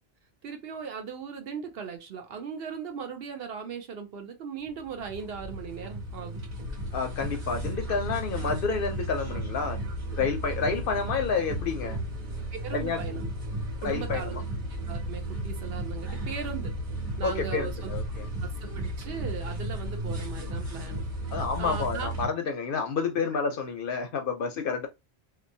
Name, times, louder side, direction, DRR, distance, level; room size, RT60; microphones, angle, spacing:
voice 1, 0.4-6.4 12.5-13.3 13.8-14.4 14.7-16.7 17.2-17.9 18.4-21.0 21.6-22.1, right 6 dB, 65° right, 0.8 m, -38 dB
sound 1, 4.7-22.3, right 1 dB, 35° right, 1.5 m, -34 dB
voice 2, 6.9-9.8 10.1-12.0 12.7-13.0 13.8-14.4 17.2-18.3 21.3-24.9, left 5 dB, 60° left, 0.7 m, -29 dB
2.9 x 2.2 x 2.6 m
omnidirectional pair, 1.1 m